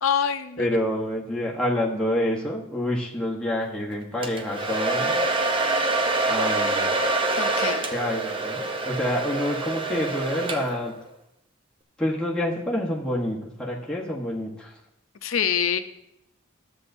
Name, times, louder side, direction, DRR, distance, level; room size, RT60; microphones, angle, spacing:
voice 1, 0.0-0.7 7.4-7.9 15.2-15.8, left 8 dB, 90° left, 9 dB, 0.6 m, -25 dB
voice 2, 0.6-5.2 6.3-6.9 7.9-10.9 12.0-14.7, left 1 dB, 5° left, -5 dB, 1.1 m, -27 dB
Domestic sounds home sounds, 4.2-10.9, right 2 dB, 25° right, 0.6 m, -26 dB
12.5 x 7.7 x 2.6 m, 0.84 s
head